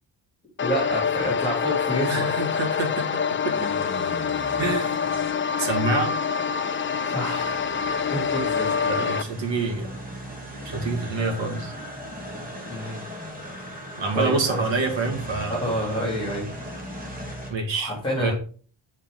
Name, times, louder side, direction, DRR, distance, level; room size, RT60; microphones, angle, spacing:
sound 1, 0.6-9.2, left 6 dB, 30° left, 0.4 m, -26 dB
voice 1, 0.6-2.3 4.4-4.6 7.0-7.7 8.1-8.7 12.7-13.0 14.1-14.6 15.5-16.5 17.8-18.3, equal, 10° left, -4 dB, 3.4 m, -28 dB
voice 2, 2.1-3.0 3.4-3.5 4.6-5.0 5.6-6.1 8.8-9.9 10.6-11.7 14.0-15.5 17.5-17.9 18.2-18.3, right 3 dB, 65° right, 2 dB, 2.2 m, -26 dB
sound 2, 3.5-17.5, equal, 15° right, 2.4 m, -38 dB
7.2 x 4.4 x 5.4 m, 0.41 s
wide cardioid pair, 120°, 48 cm